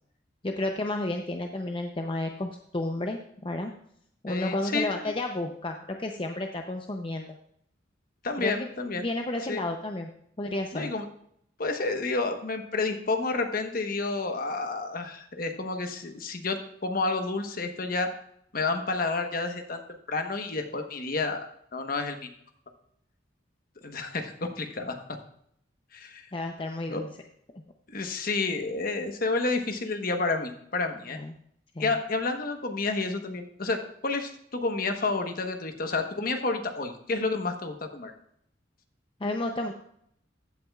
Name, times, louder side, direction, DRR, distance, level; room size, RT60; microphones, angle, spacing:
voice 1, 0.4-3.7 4.2-7.3 8.4-8.7 9.0-10.1 10.4-10.9 26.3-27.1 27.5-27.6 31.1-31.3 31.7-31.9 39.2-39.7, left 2 dB, 30° left, 4 dB, 0.6 m, -32 dB
voice 2, 4.3-4.9 8.2-9.0 9.5-9.6 10.7-11.0 11.6-16.6 16.8-18.1 18.5-19.8 20.1-21.5 21.7-22.3 23.8-25.0 25.9-26.3 26.9-27.0 27.9-31.2 31.8-38.1, left 3 dB, 50° left, 5 dB, 1.1 m, -30 dB
15.0 x 8.5 x 2.4 m, 0.69 s
head